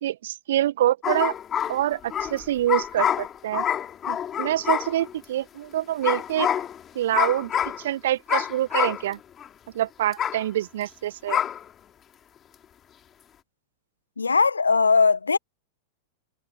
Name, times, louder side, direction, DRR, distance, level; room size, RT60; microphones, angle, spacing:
voice 1, 0.0-1.3 1.7-3.6 4.1-6.5 7.0-7.5 7.8-9.2 9.7-11.4, right 13 dB, 60° right, 1.8 m, -26 dB
sound 1, 1.0-5.2 6.0-6.8 7.1-7.9 8.3-9.1 9.4-9.5 10.1-10.4 11.3-11.6, left 9 dB, 25° left, 3.5 m, -27 dB
voice 2, 14.2-15.4, left 4 dB, 75° left, 1.3 m, -19 dB
figure-of-eight pair, 90°, 0 cm